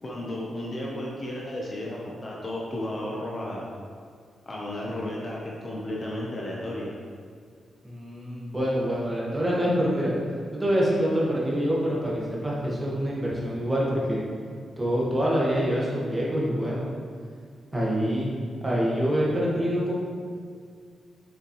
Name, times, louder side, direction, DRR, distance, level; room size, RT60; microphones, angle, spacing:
voice 1, 0.0-3.7 4.5-6.9, left 1 dB, 30° left, -4 dB, 0.9 m, -33 dB
voice 2, 7.8-10.1 10.5-14.2 14.8-16.9 17.7-20.0, equal, 15° right, -6 dB, 1.6 m, -26 dB
7.0 x 6.5 x 3.1 m, 2.1 s
wide cardioid pair, 145°, 0 cm